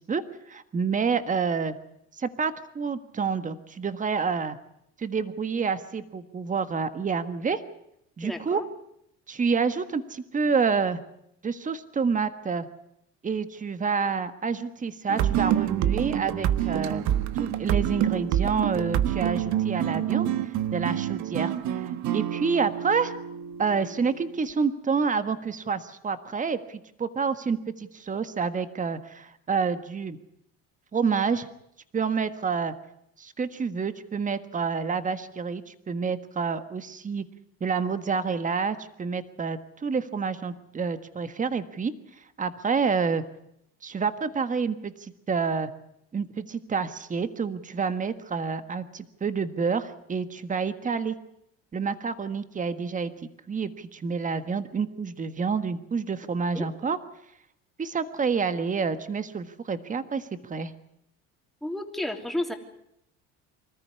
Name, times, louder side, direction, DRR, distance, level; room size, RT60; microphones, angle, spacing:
voice 1, 0.5-1.7 2.2-4.6 5.0-7.6 8.2-8.6 9.3-11.0 11.4-12.7 13.2-17.0 17.3-23.1 23.6-30.2 30.9-31.5 31.9-32.7 33.2-37.2 37.6-41.9 42.4-43.2 43.8-45.7 46.1-51.2 51.7-53.1 53.5-57.0 57.8-60.7, right 5 dB, 25° right, 11 dB, 1.6 m, -28 dB
voice 2, 8.2-8.6 56.5-56.7 61.6-62.5, left 1 dB, ahead, 3 dB, 3.2 m, -31 dB
sound 1, 15.1-24.5, right 11 dB, 65° right, 1.3 m, -27 dB
25.5 x 14.0 x 9.6 m, 0.78 s
cardioid pair, 110°, 31 cm